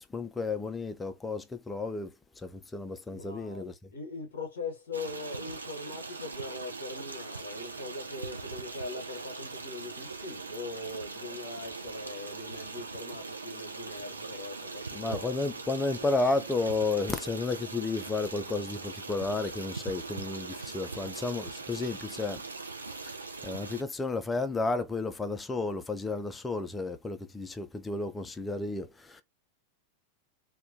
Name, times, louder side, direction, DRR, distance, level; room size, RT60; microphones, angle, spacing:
voice 1, 0.0-3.7 14.9-22.4 23.0-23.1 23.4-29.2, left 3 dB, 15° left, 0.3 m, -32 dB
voice 2, 3.1-15.3, left 3 dB, 60° left, 0.7 m, -41 dB
Stream, 4.9-23.8, right 3 dB, 80° right, 0.4 m, -41 dB
2.2 x 2.1 x 2.5 m
figure-of-eight pair, 90°, 0 cm